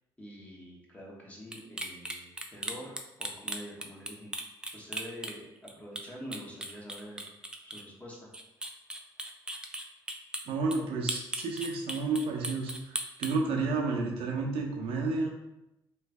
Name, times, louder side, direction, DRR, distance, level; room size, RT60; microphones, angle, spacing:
voice 1, 0.2-4.3 4.7-7.2 7.6-8.3, equal, 15° left, -3 dB, 1.2 m, -46 dB
sound 1, 1.5-5.7 6.0-6.1 6.3-7.8 8.1-10.4 10.7-10.8 11.1-13.3, right 1 dB, 10° right, 0.5 m, -36 dB
voice 2, 10.5-15.3, right 3 dB, 75° right, 0 dB, 0.6 m, -31 dB
3.1 x 2.5 x 3.4 m, 0.90 s
supercardioid pair, 75°, 9 cm